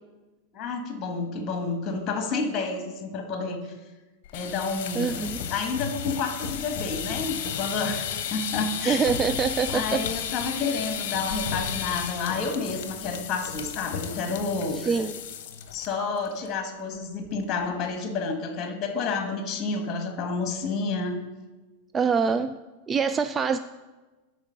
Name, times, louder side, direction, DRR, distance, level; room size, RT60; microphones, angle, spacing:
voice 1, 0.5-3.7 4.3-5.1 5.5-9.1 9.7-14.9 15.7-21.2, left 4 dB, 30° left, 5 dB, 1.6 m, -30 dB
sound 1, 4.2-15.9 16.2-16.5 16.8-16.9 17.2-17.7, left 8 dB, 50° left, 1.0 m, -33 dB
voice 2, 5.0-5.4 8.9-10.0 14.8-15.1 21.9-22.5 22.9-23.6, right 5 dB, 20° right, 10 dB, 0.3 m, -24 dB
12.5 x 4.7 x 5.8 m, 1.2 s
figure-of-eight pair, 90°, 0 cm